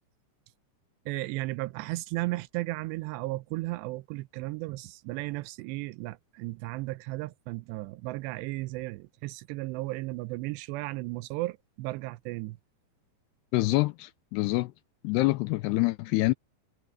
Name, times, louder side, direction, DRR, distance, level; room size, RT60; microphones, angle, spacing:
voice 1, 1.1-12.6, right 20 dB, 85° right, 2.7 m, -35 dB
voice 2, 13.5-14.7 15.0-16.3, left 20 dB, 80° left, 2.5 m, -26 dB
omnidirectional pair, 5.1 m